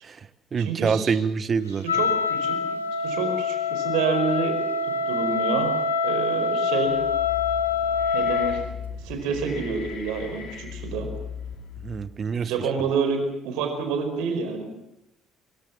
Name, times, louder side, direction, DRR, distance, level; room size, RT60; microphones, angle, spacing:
voice 1, 0.0-1.8 11.8-12.7, right 5 dB, 40° right, 15 dB, 1.4 m, -26 dB
voice 2, 0.6-1.1 1.9-2.6 3.0-4.6 5.1-5.7 6.0-7.0 8.1-8.6 9.0-11.1 12.4-14.7, right 5 dB, 70° right, 6 dB, 4.9 m, -28 dB
Wind instrument woodwind instrument, 1.9-8.7, left 5 dB, 90° left, 1.4 m, -25 dB
sound 1, 6.8-12.1, left 7 dB, 55° left, 5.9 m, -38 dB
25.5 x 23.5 x 7.4 m, 0.87 s
hypercardioid pair, 50°, 0 cm